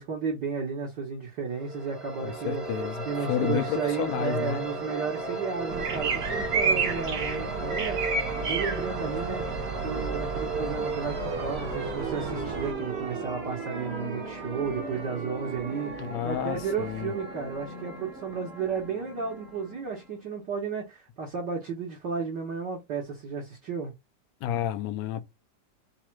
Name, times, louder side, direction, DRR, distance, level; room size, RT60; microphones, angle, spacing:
voice 1, 0.0-2.6 3.0-9.4 9.8-23.9, right 6 dB, 60° right, 1.1 m, -33 dB
sound 1, 1.5-20.2, right 3 dB, 40° right, 0.9 m, -35 dB
voice 2, 2.2-4.6 16.0-17.1 24.4-25.3, left 10 dB, 75° left, 1.8 m, -31 dB
sound 2, 5.7-12.7, right 4 dB, 85° right, 0.8 m, -31 dB
4.9 x 2.4 x 4.4 m
omnidirectional pair, 3.5 m